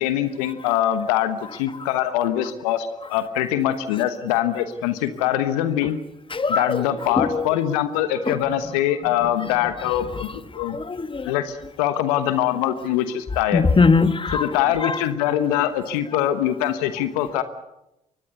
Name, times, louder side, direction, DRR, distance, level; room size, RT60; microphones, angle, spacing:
voice 1, 0.0-6.0 6.5-10.8 11.2-13.6 14.4-17.4, left 11 dB, 80° left, 11 dB, 1.2 m, -23 dB
voice 2, 6.3-7.6 8.3-8.4 10.1-10.2 10.7-11.3 13.5-14.5 14.8-15.0, left 4 dB, 25° left, 12 dB, 1.5 m, -21 dB
23.5 x 18.5 x 8.1 m, 0.90 s
hypercardioid pair, 45°, 19 cm